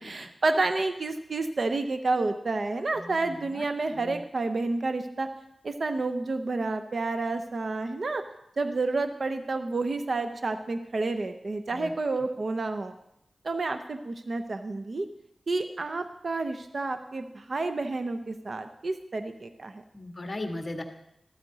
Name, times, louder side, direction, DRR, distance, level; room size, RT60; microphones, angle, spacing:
voice 1, 0.0-5.3 5.6-8.2 8.6-12.9 13.4-15.1 15.5-19.8, right 3 dB, 50° right, 8 dB, 0.6 m, -30 dB
voice 2, 19.9-20.8, left 2 dB, 30° left, 3 dB, 1.6 m, -36 dB
14.0 x 13.0 x 4.0 m, 0.82 s
wide cardioid pair, 110°, 0 cm